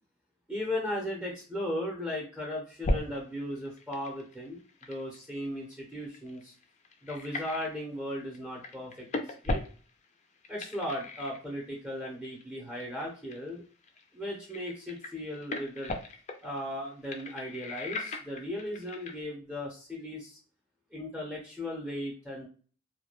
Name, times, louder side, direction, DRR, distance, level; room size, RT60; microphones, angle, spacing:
voice 1, 0.5-4.6 4.9-6.5 7.0-9.1 9.4-9.6 10.5-13.6 14.1-15.9 16.4-20.4 20.9-22.5, left 1 dB, 5° right, -4 dB, 0.6 m, -36 dB
sound 1, 2.8-3.2 3.5-7.8 8.1-8.4 8.6-10.1 10.4-11.8 12.2-12.4 12.8-13.5 13.8-14.0 14.4-19.2, left 2 dB, 35° left, 0.4 m, -36 dB
2.3 x 2.1 x 2.9 m, 0.40 s
head